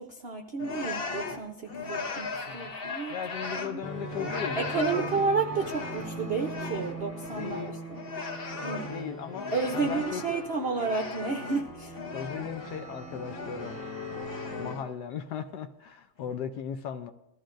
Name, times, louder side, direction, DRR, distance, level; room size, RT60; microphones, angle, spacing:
voice 1, 0.0-3.1 3.5-3.8 4.6-7.8 8.6-8.9 9.5-12.0 14.5-14.8, right 4 dB, 60° right, 2 dB, 0.6 m, -31 dB
sound 1, 0.6-3.8 4.1-10.5 10.7-12.8 13.1-13.8 14.1-14.9, left 4 dB, 50° left, 0.7 m, -37 dB
voice 2, 3.1-5.1 7.3-7.8 8.9-9.5 9.7-10.2 12.1-13.9 14.6-17.1, left 7 dB, 70° left, 8 dB, 1.1 m, -37 dB
sound 2, 3.8-14.8, equal, 30° left, 1.9 m, -40 dB
20.5 x 14.0 x 2.6 m, 0.89 s
omnidirectional pair, 2.1 m